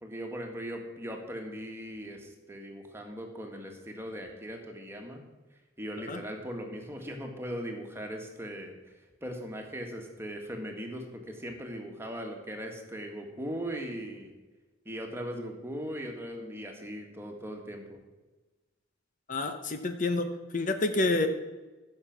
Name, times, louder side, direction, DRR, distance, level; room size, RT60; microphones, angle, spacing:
voice 1, 0.0-5.2 5.8-8.8 9.2-14.3 14.9-18.0, equal, 15° right, 2 dB, 1.8 m, -39 dB
voice 2, 19.3-21.3, left 2 dB, 45° left, 7 dB, 0.9 m, -28 dB
15.5 x 6.8 x 6.0 m, 1.2 s
head